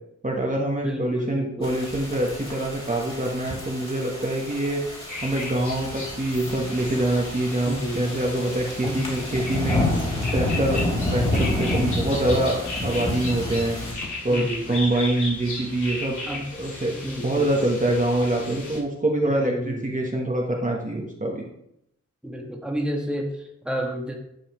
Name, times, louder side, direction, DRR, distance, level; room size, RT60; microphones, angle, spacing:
voice 1, 0.2-4.8 5.2-9.8 10.3-13.8 14.2-16.2 16.6-21.4, right 1 dB, 25° right, -2 dB, 1.1 m, -25 dB
voice 2, 0.8-1.7 7.7-8.2 8.8-9.3 14.3-14.8 16.3-16.4 16.9-17.5 19.3-20.0 22.2-24.2, equal, 5° right, 0 dB, 1.4 m, -31 dB
sound 1, 1.6-13.9, left 1 dB, 20° left, 2.8 m, -29 dB
sound 2, 5.1-18.8, left 2 dB, 85° left, 2.3 m, -36 dB
10.0 x 5.6 x 3.1 m, 0.79 s
wide cardioid pair, 85°, 29 cm